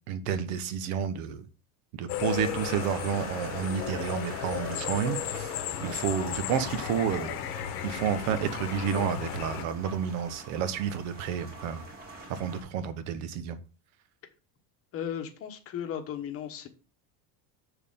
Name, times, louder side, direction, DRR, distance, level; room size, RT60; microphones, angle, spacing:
voice 1, 0.1-1.4 1.9-5.5 5.8-7.4 7.8-11.8 12.3-13.6, right 8 dB, 65° right, 1.1 m, -30 dB
sound 1, 2.1-9.6, left 11 dB, 85° left, 1.2 m, -35 dB
sound 2, 2.2-12.6, right 2 dB, 20° right, 2.0 m, -45 dB
voice 2, 14.9-16.7, left 9 dB, 30° left, 1.0 m, -36 dB
7.0 x 6.5 x 3.7 m
cardioid pair, 175°, 45 cm